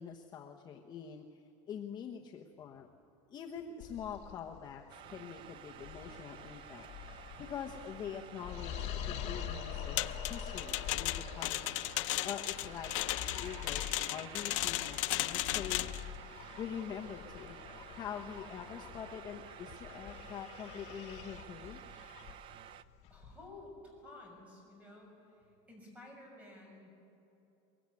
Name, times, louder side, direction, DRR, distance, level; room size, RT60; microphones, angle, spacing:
voice 1, 0.0-2.9 3.3-6.9 7.1-11.7 12.2-15.9 16.6-17.6 17.9-21.8, left 8 dB, 25° left, 1 dB, 1.1 m, -45 dB
sound 1, 3.8-23.5, left 9 dB, 45° left, 1.7 m, -46 dB
sound 2, 4.9-22.8, right 10 dB, 30° right, 0.6 m, -52 dB
sound 3, 10.0-16.0, left 19 dB, 80° left, 0.6 m, -35 dB
voice 2, 23.1-26.9, left 2 dB, 10° right, 0 dB, 6.5 m, -53 dB
22.5 x 22.5 x 9.7 m, 2.9 s
cardioid pair, 170°, 16 cm